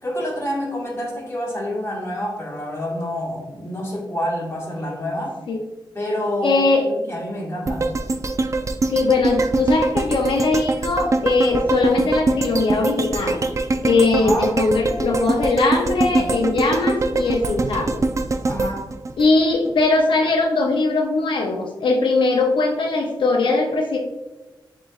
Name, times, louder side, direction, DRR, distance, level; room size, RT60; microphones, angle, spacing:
voice 1, 0.0-5.4 5.9-7.9 14.2-14.5 18.5-18.8, equal, 30° left, -4 dB, 1.5 m, -27 dB
voice 2, 6.4-6.9 8.9-13.4 13.8-18.0 19.2-24.0, left 3 dB, 85° left, 1 dB, 0.5 m, -20 dB
sound 1, 7.7-19.9 20.3-20.4, right 3 dB, 40° right, 0.3 m, -23 dB
7.4 x 3.0 x 2.4 m, 1.1 s
wide cardioid pair, 100°, 8 cm